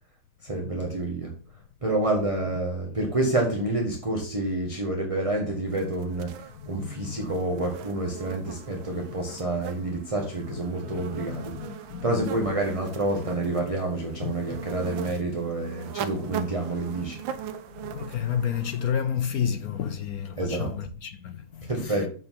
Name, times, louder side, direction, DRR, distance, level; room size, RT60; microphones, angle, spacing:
voice 1, 0.4-1.3 1.8-17.2 20.4-20.7 21.6-22.1, right 2 dB, 20° right, 1.2 m, -28 dB
sound 1, 5.7-18.9, right 9 dB, 70° right, 1.4 m, -40 dB
voice 2, 10.9-12.5 14.2-14.7 17.8-22.1, left 8 dB, 70° left, 0.8 m, -31 dB
7.8 x 4.9 x 5.8 m
omnidirectional pair, 2.4 m